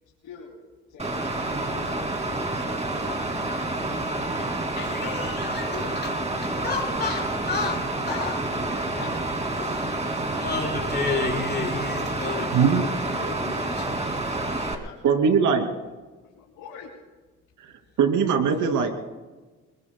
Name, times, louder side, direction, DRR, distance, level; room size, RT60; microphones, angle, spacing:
voice 1, 0.2-0.6 0.9-4.0 4.3-4.5 4.7-7.2 7.8-9.9 14.3-15.5 16.2-16.9, left 6 dB, 90° left, -2 dB, 2.9 m, -44 dB
Water, 1.0-14.7, right 2 dB, 20° right, 2.6 m, -28 dB
voice 2, 4.9-6.2 6.6-8.4 9.0-9.2 9.6-9.8 10.3-12.8 13.1-14.0, left 3 dB, 35° left, 0 dB, 4.7 m, -31 dB
voice 3, 12.5-12.9 15.0-15.6 18.0-18.9, right 6 dB, 85° right, 4 dB, 2.7 m, -20 dB
28.5 x 21.5 x 2.3 m, 1.2 s
cardioid pair, 90°, 30 cm